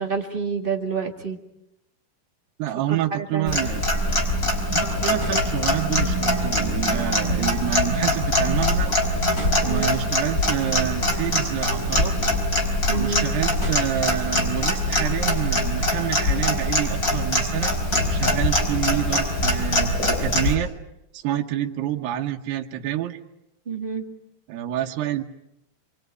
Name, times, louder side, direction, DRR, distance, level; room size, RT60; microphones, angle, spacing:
voice 1, 0.0-1.4 2.9-3.6 9.7-9.9 12.9-13.3 23.6-24.0, right 5 dB, 35° right, 2 dB, 0.8 m, -28 dB
voice 2, 2.6-3.9 4.7-8.9 9.6-12.2 13.0-17.7 18.1-20.7 21.1-23.2 24.5-25.2, right 12 dB, 80° right, 2 dB, 3.2 m, -28 dB
Clock, 3.5-20.6, left 1 dB, 20° left, 4.6 m, -23 dB
27.0 x 24.0 x 9.2 m, 0.87 s
omnidirectional pair, 4.7 m